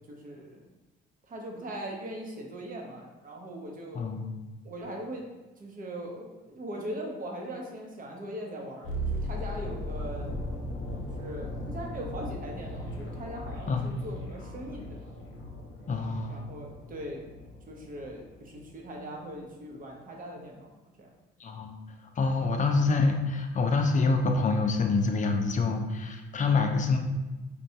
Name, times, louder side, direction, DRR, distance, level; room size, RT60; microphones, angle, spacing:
voice 1, 0.1-0.6 1.3-4.0 4.6-5.3 5.6-10.3 11.0-15.1 16.3-20.7 21.0-21.1, right 1 dB, 45° right, 0 dB, 0.8 m, -40 dB
voice 2, 3.9-4.3 13.7-13.9 15.9-16.4 21.4-21.8 22.2-27.0, left 3 dB, 40° left, 4 dB, 0.5 m, -26 dB
sound 1, 8.8-18.8 19.1-19.3, equal, 80° left, 0.8 m, -38 dB
4.3 x 2.2 x 2.7 m, 1.1 s
cardioid pair, 90°, 20 cm